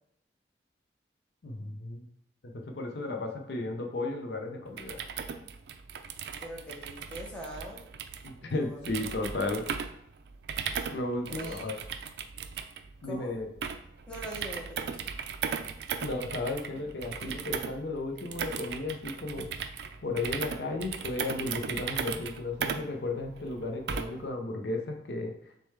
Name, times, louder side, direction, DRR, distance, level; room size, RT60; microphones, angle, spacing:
voice 1, 1.4-2.1 2.5-5.0 8.2-9.6 10.9-11.8 13.0-13.5 16.0-19.5 20.0-25.3, left 2 dB, 70° left, 3 dB, 0.5 m, -34 dB
voice 2, 2.9-3.3 6.4-7.8 8.5-9.4 11.3-11.7 13.0-13.3 14.1-15.0, equal, 5° left, -3 dB, 0.8 m, -43 dB
sound 1, 4.7-24.3, right 6 dB, 65° right, 0.3 m, -37 dB
6.4 x 2.2 x 3.2 m, 0.76 s
head